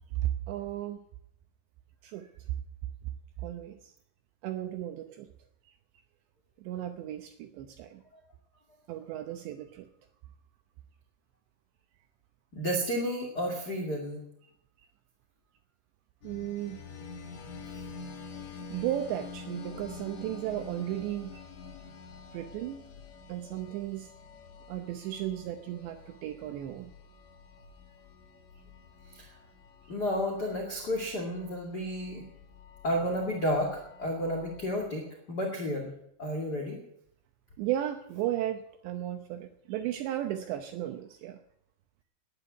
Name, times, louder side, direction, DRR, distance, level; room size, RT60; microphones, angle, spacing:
voice 1, 0.2-1.0 2.0-2.3 3.4-3.8 4.4-5.3 6.6-8.0 8.9-9.9 16.2-16.8 18.7-21.4 22.3-22.8 23.3-24.1 24.7-26.9 37.6-41.4, right 12 dB, 75° right, 7 dB, 2.8 m, -35 dB
voice 2, 12.5-14.2 29.1-29.3 29.9-32.2 32.8-35.9 36.2-36.8, equal, 40° left, -1 dB, 1.5 m, -31 dB
sound 1, 16.2-34.8, left 5 dB, 75° left, 1.7 m, -48 dB
12.5 x 10.5 x 9.4 m, 0.73 s
omnidirectional pair, 5.7 m